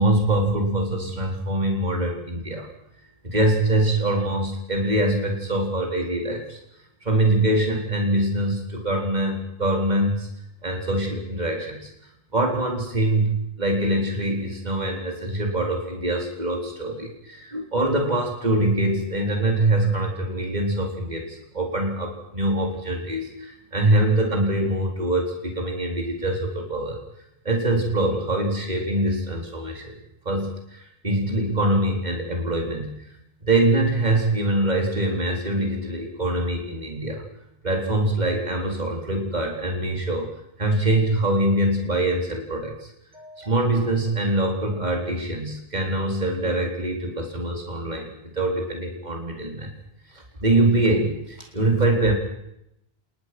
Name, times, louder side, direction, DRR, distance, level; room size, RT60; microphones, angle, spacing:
voice 1, 0.0-2.7 3.2-6.6 7.0-10.3 10.6-11.9 12.3-27.0 27.4-30.0 30.3-33.0 33.4-37.2 37.6-49.7 50.1-52.1, right 1 dB, 45° right, 1 dB, 4.1 m, -24 dB
29.5 x 20.0 x 6.1 m, 0.79 s
omnidirectional pair, 1.0 m